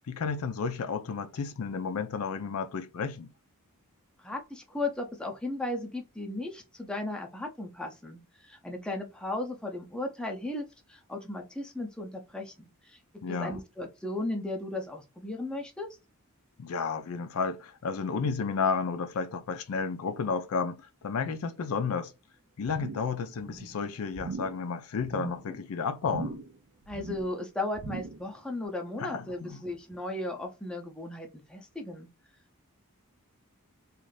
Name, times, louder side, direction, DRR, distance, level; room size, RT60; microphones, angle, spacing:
voice 1, 0.1-3.3 13.2-13.6 16.6-22.1 22.6-26.4 29.0-29.6, left 5 dB, 70° left, 0.4 m, -32 dB
voice 2, 4.2-15.9 25.5-25.6 26.9-32.1, left 2 dB, 5° left, 0.6 m, -36 dB
sound 1, 22.7-23.2 23.4-23.8 24.1-24.6 25.0-25.4 26.0-26.6 26.8-27.4 27.7-28.3 28.6-28.7, right 4 dB, 70° right, 0.4 m, -40 dB
2.6 x 2.4 x 3.2 m
head